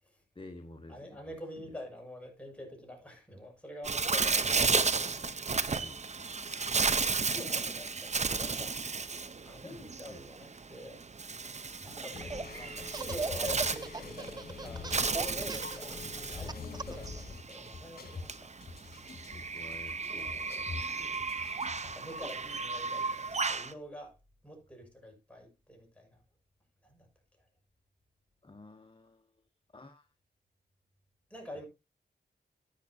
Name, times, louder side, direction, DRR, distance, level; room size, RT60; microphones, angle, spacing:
voice 1, 0.3-1.2 4.2-4.3 4.6-4.8 5.8-6.3 7.2-7.4 9.6-10.2 12.1-12.3 19.3-20.5 20.7-21.2 28.4-29.3 29.7-30.1, left 2 dB, 30° left, 1.3 m, -51 dB
voice 2, 0.9-5.0 5.3-5.6 7.1-9.1 9.4-11.0 11.8-18.5 21.8-24.2 24.4-26.2 26.8-27.1 31.3-31.7, left 1 dB, 5° left, 6.6 m, -47 dB
Bird, 3.8-23.7, right 4 dB, 40° right, 0.9 m, -34 dB
Laughter, 11.9-12.5 12.9-17.1, right 3 dB, 25° right, 0.5 m, -38 dB
sound 1, 12.1-22.1, left 4 dB, 55° left, 2.9 m, -45 dB
13.0 x 10.0 x 2.8 m
cardioid pair, 60°, 18 cm